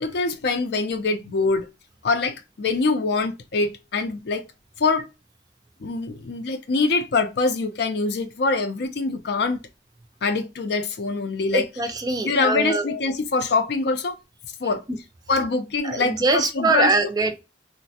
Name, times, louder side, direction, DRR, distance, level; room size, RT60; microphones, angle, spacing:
voice 1, 0.0-1.7 2.0-4.4 4.8-5.1 5.8-9.6 10.2-11.6 12.2-14.2 14.6-14.8 15.3-16.9, left 3 dB, 65° left, 0.5 m, -24 dB
voice 2, 11.5-12.9 14.9-15.0 15.8-17.4, right 3 dB, 20° right, 0.4 m, -23 dB
3.1 x 2.1 x 2.7 m
head